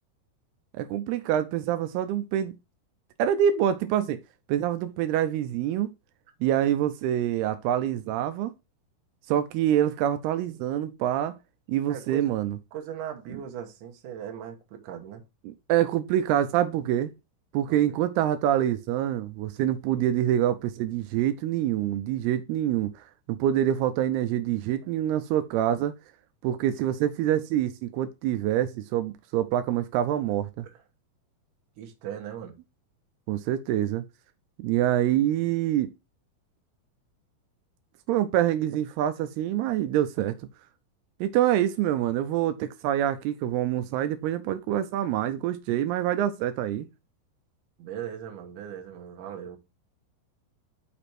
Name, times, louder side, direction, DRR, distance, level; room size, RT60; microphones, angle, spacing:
voice 1, 0.7-2.5 3.2-4.2 4.5-5.9 6.4-8.5 9.3-11.4 11.7-12.6 15.5-17.1 17.5-25.9 26.4-30.7 33.3-34.0 34.6-35.9 38.1-40.4 41.2-46.9, right 11 dB, 85° right, 2.6 m, -26 dB
voice 2, 11.9-12.4 12.7-15.2 17.7-18.0 30.6-30.8 31.8-32.5 47.8-49.6, right 9 dB, 65° right, 2.4 m, -39 dB
6.0 x 5.1 x 4.2 m
omnidirectional pair, 4.5 m